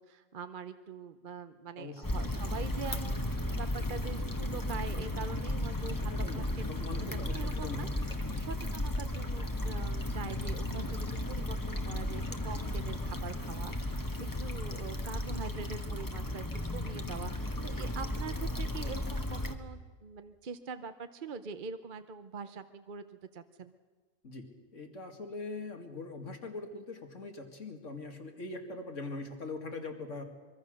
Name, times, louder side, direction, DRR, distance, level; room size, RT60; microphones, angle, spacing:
voice 1, 0.0-6.7 7.1-16.5 16.7-23.0 23.3-23.7, right 5 dB, 45° right, 10 dB, 0.8 m, -44 dB
Stream / Traffic noise roadway noise / Trickle dribble, 2.0-19.6, left 1 dB, 15° left, 1.2 m, -35 dB
voice 2, 5.8-8.2 24.2-30.2, left 3 dB, 65° left, 4 dB, 2.5 m, -42 dB
24.0 x 23.0 x 6.5 m, 1.4 s
omnidirectional pair, 1.4 m